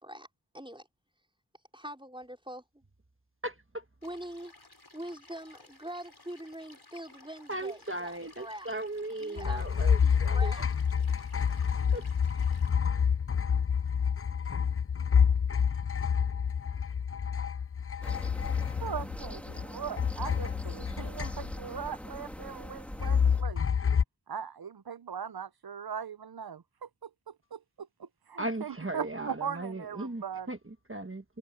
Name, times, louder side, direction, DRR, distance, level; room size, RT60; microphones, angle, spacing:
voice 1, 0.5-0.9 1.7-2.8 4.0-4.5 4.9-8.7 9.2-10.7 11.5-11.6, right 1 dB, 15° right, 4.7 m, -43 dB
voice 2, 3.4-3.8 7.5-10.5 11.5-11.6 11.9-12.1 28.4-31.4, right 2 dB, 35° right, 1.4 m, -37 dB
sound 1, 4.0-12.7, left 2 dB, 75° left, 7.3 m, -56 dB
sound 2, 9.4-19.6 20.0-21.8 23.0-24.0, left 7 dB, 35° left, 0.4 m, -28 dB
sound 3, 18.0-23.4, equal, 5° left, 2.9 m, -43 dB
voice 3, 18.8-23.6 24.3-30.5, right 7 dB, 70° right, 0.7 m, -40 dB
wide cardioid pair, 40°, 39 cm